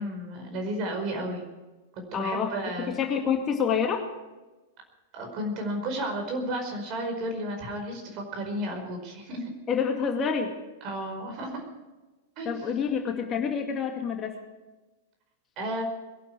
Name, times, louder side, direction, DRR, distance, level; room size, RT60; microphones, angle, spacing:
voice 1, 0.0-1.5 2.1-2.9 5.1-9.4 10.8-11.6 12.4-12.5 15.6-15.8, right 1 dB, 40° right, 3 dB, 4.9 m, -32 dB
voice 2, 2.1-2.6 2.9-4.0 9.7-10.5 12.5-14.4, left 6 dB, 25° left, 3 dB, 2.1 m, -27 dB
22.0 x 12.0 x 4.8 m, 1.2 s
figure-of-eight pair, 100°, 0 cm